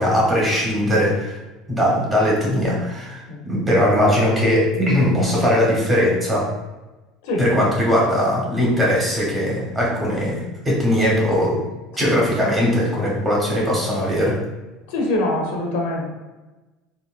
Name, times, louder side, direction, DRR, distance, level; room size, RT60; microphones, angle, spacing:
voice 1, 0.0-1.4 1.7-6.5 7.4-11.6 12.0-14.4, equal, 15° right, -4 dB, 1.0 m, -20 dB
voice 2, 14.9-16.0, left 1 dB, 85° left, 0 dB, 0.8 m, -23 dB
3.8 x 2.0 x 2.5 m, 1.1 s
cardioid pair, 135°, 0 cm